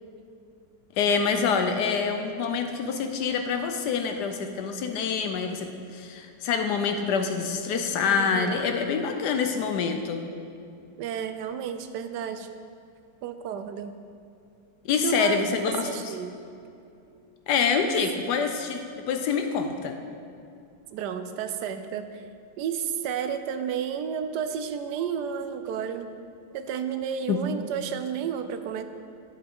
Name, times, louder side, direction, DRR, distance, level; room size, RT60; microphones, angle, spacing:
voice 1, 1.0-10.2 14.8-16.1 17.5-20.0 27.3-27.4, left 6 dB, 70° left, 6 dB, 1.1 m, -26 dB
voice 2, 8.1-8.6 11.0-12.5 13.2-13.9 15.0-15.4 15.8-16.4 20.9-22.2 22.6-26.1 26.5-28.8, right 8 dB, 75° right, 9 dB, 1.1 m, -31 dB
10.0 x 8.0 x 3.6 m, 2.6 s
omnidirectional pair, 2.0 m